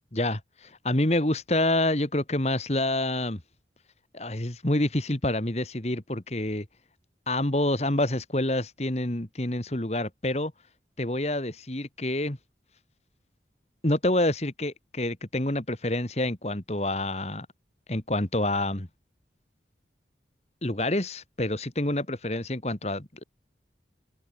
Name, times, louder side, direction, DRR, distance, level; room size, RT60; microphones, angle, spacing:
voice 1, 0.1-3.4 4.1-6.7 7.3-10.5 11.0-12.4 13.8-17.5 17.9-18.9 20.6-23.2, left 1 dB, 35° left, 2.0 m, -27 dB
head